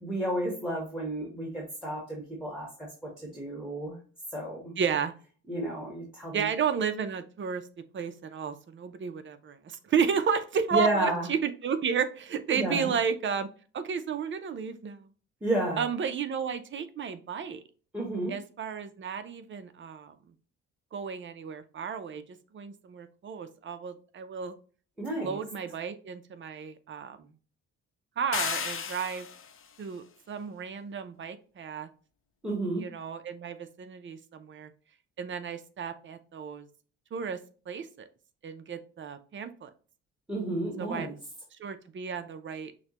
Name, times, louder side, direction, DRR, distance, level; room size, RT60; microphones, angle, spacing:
voice 1, 0.0-4.0 4.3-4.7 5.5-6.5 10.7-11.2 12.5-12.9 15.4-15.9 17.9-18.3 25.0-25.4 32.4-32.8 40.3-41.1, right 1 dB, ahead, -1 dB, 1.4 m, -31 dB
voice 2, 4.8-5.1 6.3-7.6 7.9-13.5 13.7-15.1 15.8-17.6 18.3-20.1 20.9-22.2 22.5-24.5 25.2-27.3 28.2-29.3 29.8-31.9 32.8-34.7 35.2-36.7 37.1-37.4 37.7-38.1 38.4-39.7 40.8-41.1 41.6-42.7, right 6 dB, 40° right, 10 dB, 0.6 m, -32 dB
sound 1, 28.3-29.6, left 7 dB, 45° left, 0.7 m, -33 dB
6.1 x 2.2 x 3.0 m, 0.38 s
cardioid pair, 90°, 30 cm